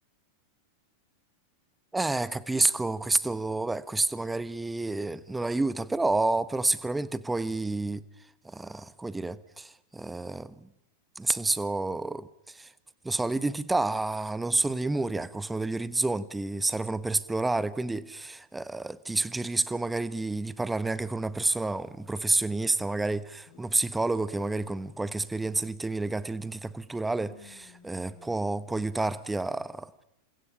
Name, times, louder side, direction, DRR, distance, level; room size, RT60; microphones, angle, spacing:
voice 1, 1.9-8.0 8.4-10.7 11.2-12.7 13.0-30.0, right 2 dB, 10° right, 1.1 m, -29 dB
sound 1, 23.5-23.9 24.3-25.9 26.5-26.6 26.9-29.2, left 8 dB, 40° left, 5.5 m, -56 dB
29.5 x 26.5 x 5.7 m
figure-of-eight pair, 90°, 0 cm